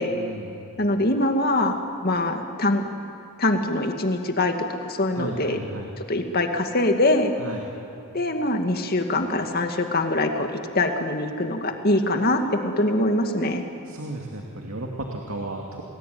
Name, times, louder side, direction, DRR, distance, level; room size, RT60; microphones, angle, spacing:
voice 1, 0.1-0.7 5.1-5.9 7.4-7.7 13.9-15.8, right 1 dB, 70° right, 0 dB, 2.6 m, -34 dB
voice 2, 0.8-2.8 3.4-5.6 6.1-7.3 8.1-13.6, left 2 dB, 45° left, 5 dB, 2.2 m, -23 dB
29.5 x 20.0 x 9.5 m, 2.9 s
head